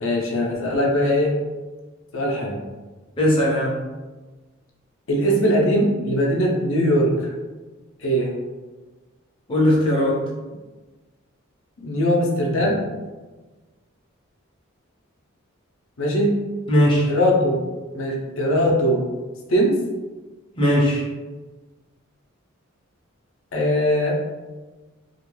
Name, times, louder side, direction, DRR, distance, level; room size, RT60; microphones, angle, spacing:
voice 1, 0.0-1.3 2.1-2.6 5.1-7.3 8.0-8.3 11.8-12.8 16.0-16.3 17.1-17.6 17.9-19.0 19.5-19.8 23.5-24.2, equal, 70° left, -2 dB, 0.6 m, -20 dB
voice 2, 3.2-3.7 9.5-10.2 16.7-17.1 20.6-21.0, equal, 25° left, -5 dB, 0.5 m, -18 dB
2.4 x 2.2 x 3.0 m, 1.2 s
head